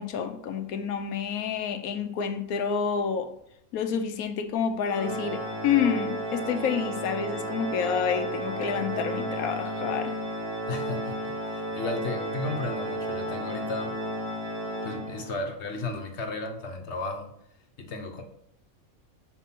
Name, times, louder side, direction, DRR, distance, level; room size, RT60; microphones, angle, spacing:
voice 1, 0.0-3.3 3.7-10.1, left 7 dB, 75° left, 1.1 m, -28 dB
Organ, 4.9-15.6, right 1 dB, 70° right, 2.3 m, -33 dB
voice 2, 10.7-14.0 14.8-17.3 17.8-18.2, left 2 dB, 55° left, 1.1 m, -34 dB
5.9 x 4.5 x 5.8 m
omnidirectional pair, 1.5 m